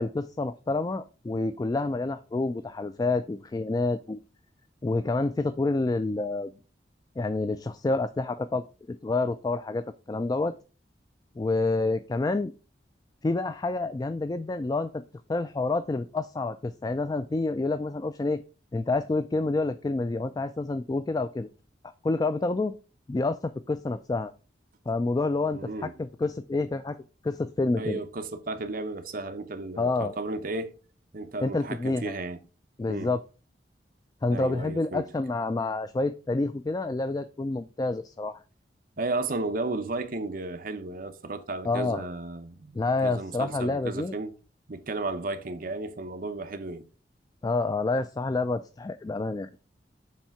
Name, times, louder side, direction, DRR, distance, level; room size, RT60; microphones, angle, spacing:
voice 1, 0.0-4.2 4.8-6.5 7.2-8.6 9.0-10.5 11.4-12.5 13.2-15.0 15.3-18.4 18.7-21.5 22.0-22.7 23.1-24.3 24.9-27.0 27.2-28.0 29.8-30.1 31.4-32.1 32.8-33.2 34.2-38.4 41.6-42.1 42.7-44.1 47.4-49.6, left 3 dB, 20° left, 0.3 m, -28 dB
voice 2, 25.5-25.9 27.8-30.7 31.1-32.4 32.9-33.1 34.3-35.1 39.0-42.7 43.0-44.3 44.7-46.9, right 2 dB, 50° right, 0.8 m, -34 dB
7.2 x 3.3 x 5.7 m
head